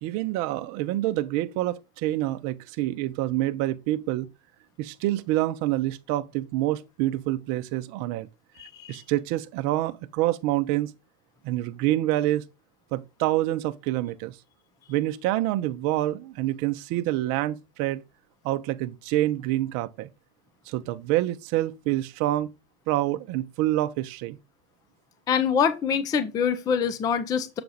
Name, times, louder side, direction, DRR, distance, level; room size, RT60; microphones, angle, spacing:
voice 1, 0.0-4.3 4.8-8.3 8.9-10.9 11.4-12.4 12.9-14.4 14.9-18.0 18.4-20.1 20.7-22.5 22.9-24.4, right 15 dB, 40° right, 0.7 m, -27 dB
voice 2, 8.6-9.0 25.3-27.6, left 7 dB, 10° left, 0.3 m, -25 dB
7.0 x 4.6 x 4.0 m
hypercardioid pair, 115°, 44 cm